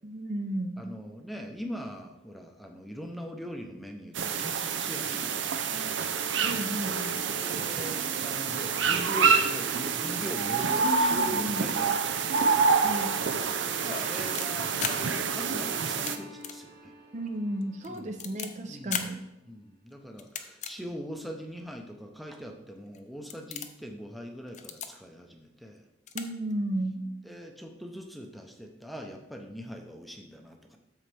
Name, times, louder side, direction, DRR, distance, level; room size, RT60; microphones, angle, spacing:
voice 1, 0.0-0.8 6.4-7.2 10.8-11.6 12.8-13.1 17.1-19.2 26.1-27.1, right 1 dB, 40° right, 6 dB, 0.5 m, -33 dB
voice 2, 0.8-5.8 7.4-12.2 13.5-16.9 17.9-18.2 18.7-19.1 19.5-25.9 27.2-30.8, equal, ahead, 3 dB, 0.7 m, -41 dB
sound 1, 4.1-16.2, right 5 dB, 85° right, 0.6 m, -27 dB
sound 2, 5.7-18.4, right 1 dB, 60° right, 1.1 m, -44 dB
sound 3, 13.8-14.9 15.8-16.1 16.4-16.6 16.9-17.0 17.6-18.5 18.9-19.1 20.2-20.7 21.4-21.5 22.3-22.4 22.9-23.0 23.3-23.8 24.5-24.9 25.8-25.9 26.1-26.2 26.5-26.6, left 8 dB, 40° left, 0.6 m, -35 dB
13.0 x 4.3 x 3.4 m, 0.90 s
head